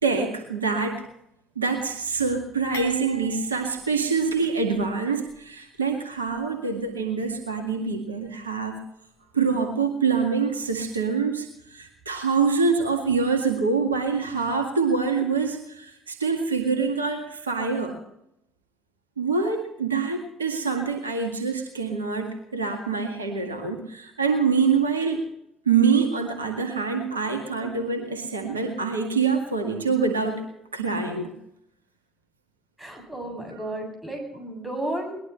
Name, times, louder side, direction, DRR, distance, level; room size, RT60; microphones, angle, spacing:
voice 1, 0.0-1.0 1.6-8.8 9.3-18.0 19.2-25.2 25.7-30.4 30.7-31.3, right 5 dB, 80° right, 4 dB, 1.9 m, -25 dB
sound 1, 2.7-4.9 5.3-5.4 6.3-6.4, left 1 dB, 70° left, 2.1 m, -42 dB
voice 2, 32.8-35.2, right 1 dB, 10° right, 2 dB, 7.9 m, -33 dB
22.0 x 20.5 x 3.2 m, 0.79 s
figure-of-eight pair, 55°, 0 cm